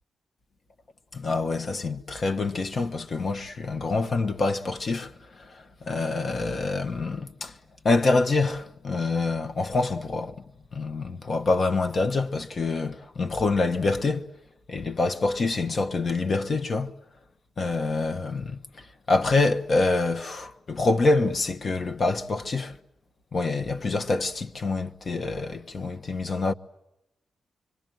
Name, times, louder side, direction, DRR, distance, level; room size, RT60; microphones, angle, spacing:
voice 1, 1.1-5.1 5.4-5.5 5.8-7.5 7.8-10.3 10.7-14.2 14.7-16.9 17.6-18.6 19.1-22.7 23.3-26.5, left 3 dB, 55° left, 1.2 m, -26 dB
25.5 x 24.0 x 9.2 m
supercardioid pair, 45°, 0 cm